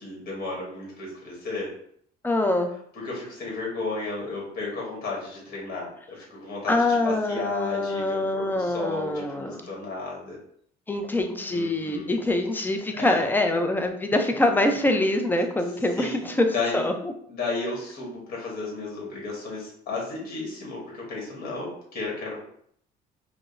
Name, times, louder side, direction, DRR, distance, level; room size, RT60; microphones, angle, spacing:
voice 1, 0.0-1.7 2.9-10.4 11.5-12.1 12.9-13.3 16.0-16.9 17.3-22.4, left 3 dB, 60° left, -3 dB, 1.4 m, -33 dB
voice 2, 2.2-2.7 6.7-9.7 10.9-16.5 16.7-17.1, left 2 dB, 10° left, 5 dB, 0.4 m, -24 dB
4.9 x 2.0 x 2.5 m, 0.64 s
cardioid pair, 110°, 17 cm